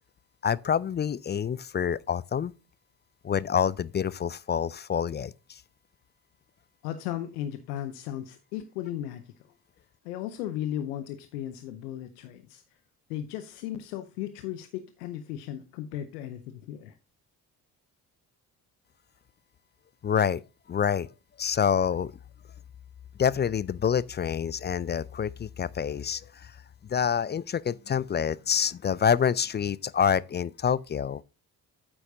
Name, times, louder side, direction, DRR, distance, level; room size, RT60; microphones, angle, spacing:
voice 1, 0.4-2.5 3.2-5.6 20.0-20.4 20.7-21.1 21.4-22.1 23.2-26.5 26.9-31.2, left 7 dB, 25° left, 0.3 m, -27 dB
voice 2, 6.8-9.2 10.0-12.6 13.1-17.0, left 11 dB, 85° left, 0.7 m, -36 dB
8.9 x 8.5 x 2.6 m
hypercardioid pair, 45°, 45 cm